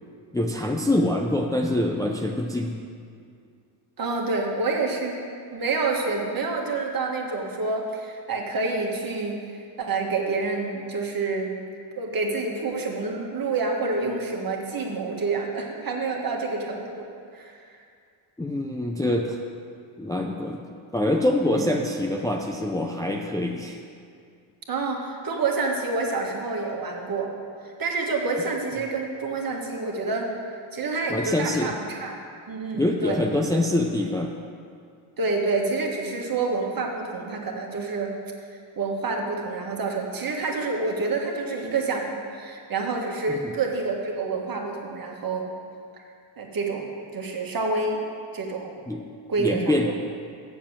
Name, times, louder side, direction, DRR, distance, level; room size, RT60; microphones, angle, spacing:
voice 1, 0.3-2.7 18.4-19.4 20.0-20.6 20.9-23.8 31.1-31.7 32.7-34.3 43.3-43.5 48.9-49.0 49.4-49.9, left 1 dB, 5° left, 1 dB, 0.6 m, -25 dB
voice 2, 4.0-5.2 5.5-11.6 12.0-17.7 21.5-21.7 24.7-27.3 27.6-30.4 30.7-32.2 32.5-33.2 35.2-38.1 38.7-45.5 46.4-48.0 48.3-48.9 49.3-49.9, right 3 dB, 45° right, 1 dB, 1.7 m, -28 dB
7.3 x 6.9 x 7.3 m, 2.3 s
cardioid pair, 80°, 49 cm